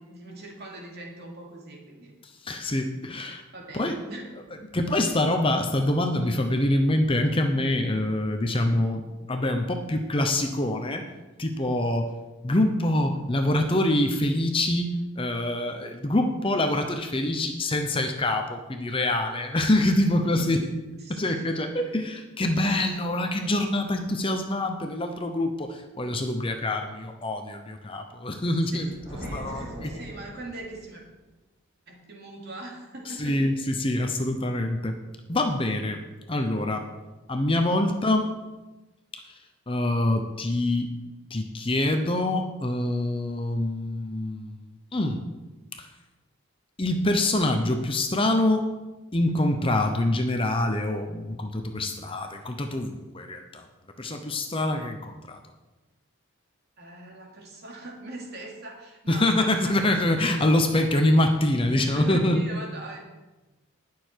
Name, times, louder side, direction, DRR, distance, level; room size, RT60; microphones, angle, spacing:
voice 1, 0.0-2.1 3.5-4.6 20.2-20.6 21.0-21.4 28.7-28.9 29.2-31.0 31.9-33.4 56.8-59.5 61.9-63.1, right 2 dB, 50° right, -1 dB, 2.7 m, -41 dB
voice 2, 2.2-3.4 3.7-4.0 4.7-11.1 11.4-12.1 12.4-20.7 21.1-28.9 29.3-30.0 33.1-35.0 35.3-36.0 36.3-36.9 37.3-38.3 39.1-39.4 39.7-40.9 41.3-44.6 44.9-45.2 45.8-45.9 46.8-48.7 49.1-53.7 54.0-55.4 59.1-62.4, left 1 dB, 25° left, 5 dB, 0.8 m, -25 dB
Thunder, 28.7-31.0, equal, 20° right, 4.9 m, -40 dB
19.0 x 6.7 x 4.6 m, 1.1 s
head